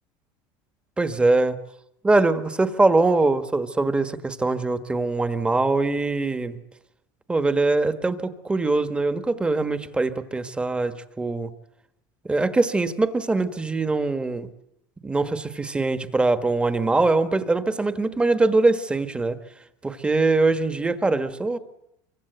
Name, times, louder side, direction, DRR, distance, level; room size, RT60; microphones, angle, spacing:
voice 1, 1.0-1.6 2.0-6.6 7.3-11.5 12.2-14.5 15.0-19.4 19.8-21.6, right 3 dB, 10° right, 10 dB, 1.4 m, -22 dB
25.0 x 24.0 x 8.1 m, 0.81 s
cardioid pair, 145°, 10 cm